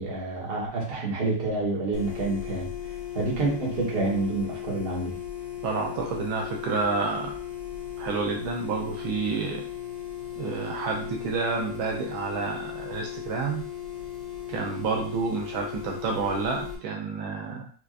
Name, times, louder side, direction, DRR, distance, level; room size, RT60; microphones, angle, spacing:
voice 1, 0.0-2.7 3.1-5.1, right 2 dB, 35° right, -4 dB, 0.9 m, -28 dB
sound 1, 1.9-16.8, left 11 dB, 75° left, 0.8 m, -37 dB
voice 2, 5.6-7.4 8.0-9.6 10.4-13.6 14.5-17.7, right 4 dB, 75° right, 0 dB, 1.3 m, -29 dB
4.6 x 2.5 x 2.4 m, 0.43 s
omnidirectional pair, 2.4 m